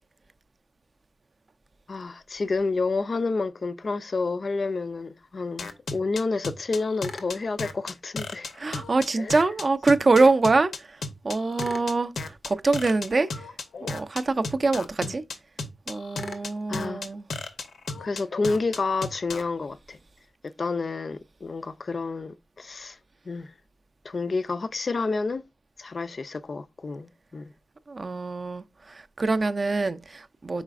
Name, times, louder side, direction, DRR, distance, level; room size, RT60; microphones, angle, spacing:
voice 1, 1.9-8.5 15.0-15.1 16.7-17.0 18.0-20.0 20.4-23.0 23.3-23.5 24.0-25.4 25.8-27.5, left 3 dB, 45° left, 0.3 m, -29 dB
sound 1, 5.6-19.4, left 4 dB, 85° left, 0.6 m, -34 dB
voice 2, 8.6-13.5 13.8-15.2 15.9-17.3 27.9-30.6, right 3 dB, 40° right, 0.4 m, -24 dB
4.8 x 4.0 x 2.4 m
wide cardioid pair, 125°, 0 cm